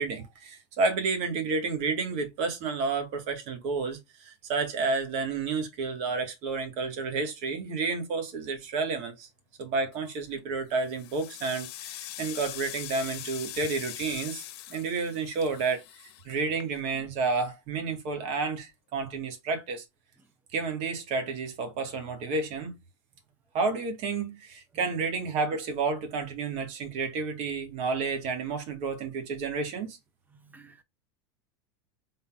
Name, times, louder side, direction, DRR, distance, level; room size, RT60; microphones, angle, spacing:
voice 1, 0.0-9.3 9.6-14.4 14.7-15.8 16.3-19.8 20.5-22.7 23.5-30.0, right 4 dB, 55° right, 1.8 m, -30 dB
sound 1, 9.9-10.3 10.8-17.1, left 13 dB, 65° left, 1.0 m, -42 dB
voice 2, 30.3-30.8, right 4 dB, 10° right, 0.7 m, -54 dB
3.9 x 3.9 x 2.5 m
supercardioid pair, 125°, 14 cm